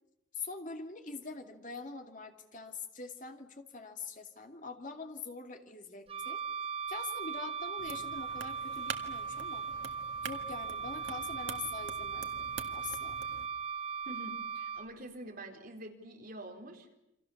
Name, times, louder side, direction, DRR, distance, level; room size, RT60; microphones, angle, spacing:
voice 1, 0.3-6.4 6.9-9.7 10.2-13.2, left 4 dB, 40° left, 5 dB, 2.5 m, -44 dB
Wind instrument woodwind instrument, 6.1-14.9, right 6 dB, 30° right, 0.9 m, -38 dB
sound 1, 7.8-13.5, right 6 dB, 70° right, 1.9 m, -46 dB
voice 2, 14.1-16.9, right 1 dB, 45° right, 2 dB, 4.1 m, -46 dB
29.0 x 25.0 x 7.2 m, 0.87 s
head